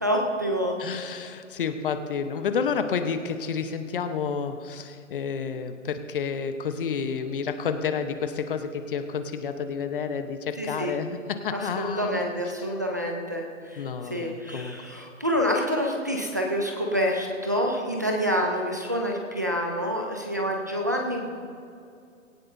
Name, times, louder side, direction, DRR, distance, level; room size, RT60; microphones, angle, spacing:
voice 1, 0.0-0.8 10.6-11.0 11.5-21.3, equal, 15° right, 1 dB, 0.4 m, -27 dB
voice 2, 0.8-12.3 13.8-14.8, left 6 dB, 40° left, 8 dB, 1.0 m, -30 dB
18.5 x 17.5 x 2.7 m, 2.4 s
hypercardioid pair, 155°, 40 cm